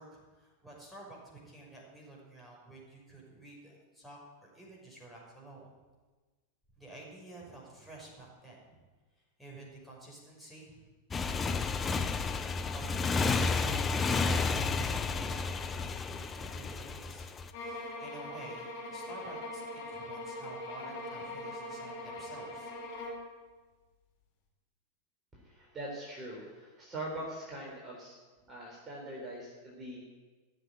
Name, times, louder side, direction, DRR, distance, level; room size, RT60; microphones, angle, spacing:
voice 1, 0.0-5.7 6.8-8.8 9.4-10.9 12.7-22.7, right 2 dB, ahead, -4 dB, 6.0 m, -51 dB
Motorcycle, 11.1-17.5, left 4 dB, 20° left, 0.9 m, -31 dB
sound 1, 17.5-23.3, left 1 dB, 45° left, 5.3 m, -41 dB
voice 2, 25.3-28.2 28.5-30.0, right 1 dB, 20° right, -4 dB, 4.2 m, -42 dB
17.0 x 7.7 x 10.0 m, 1.3 s
figure-of-eight pair, 90°, 0 cm